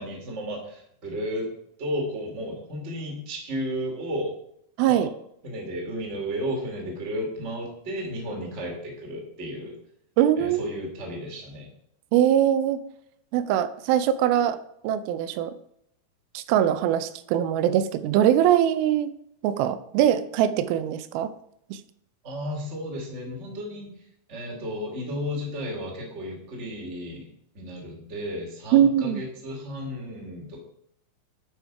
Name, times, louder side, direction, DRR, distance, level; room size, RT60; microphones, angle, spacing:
voice 1, 0.0-1.4 1.8-4.3 4.8-5.1 5.4-9.8 10.4-11.7 22.2-23.9 24.3-27.2 27.5-30.6, equal, 30° right, 0 dB, 1.4 m, -33 dB
voice 2, 4.8-5.1 10.2-10.7 12.1-12.8 13.3-14.6 14.8-15.5 16.3-19.1 19.4-21.3 21.7-21.8 28.7-29.2, right 10 dB, 85° right, 12 dB, 2.4 m, -22 dB
9.2 x 5.1 x 4.6 m, 0.74 s
omnidirectional pair, 4.3 m